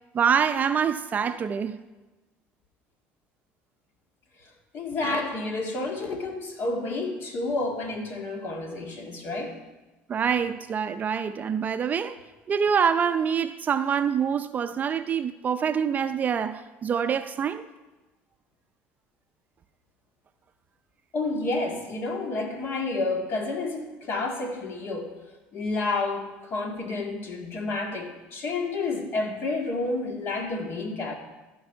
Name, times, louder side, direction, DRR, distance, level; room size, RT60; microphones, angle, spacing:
voice 1, 0.1-1.8 10.1-12.2 12.5-17.7, right 7 dB, 35° right, 0.5 m, -25 dB
voice 2, 4.4-9.6 21.1-25.2 25.5-31.1, left 3 dB, 55° left, 2.1 m, -30 dB
13.5 x 5.5 x 5.6 m
supercardioid pair, 100°, 5 cm